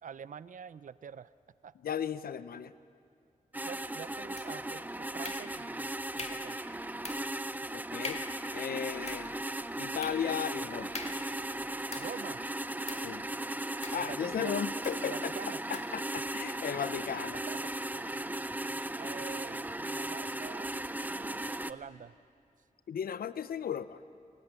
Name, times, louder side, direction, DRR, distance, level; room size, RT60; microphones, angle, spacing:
voice 1, 0.0-1.3 1.6-1.7 3.7-6.6 12.0-12.4 13.9-14.5 15.0-15.6 17.3-18.2 19.0-20.7 21.0-22.2, right 7 dB, 60° right, 17 dB, 0.5 m, -46 dB
voice 2, 1.8-2.7 7.7-8.2 8.5-9.3 9.8-10.9 13.0-13.3 13.9-15.3 15.7-17.4 22.9-24.0, left 8 dB, 80° left, 14 dB, 0.6 m, -35 dB
sound 1, 3.5-21.7, right 1 dB, 10° right, 0.7 m, -37 dB
sound 2, 4.4-4.8 5.2-5.8 6.2-6.6 7.0-7.4 7.7-7.8 8.0-8.4 8.9-12.3 12.9-13.2 13.8-14.4 14.8-15.1 15.7-16.0, left 3 dB, 45° left, 2.4 m, -44 dB
sound 3, 16.0-21.8, left 1 dB, 20° left, 6.6 m, -61 dB
28.0 x 17.5 x 8.1 m, 2.4 s
cardioid pair, 65°, 15 cm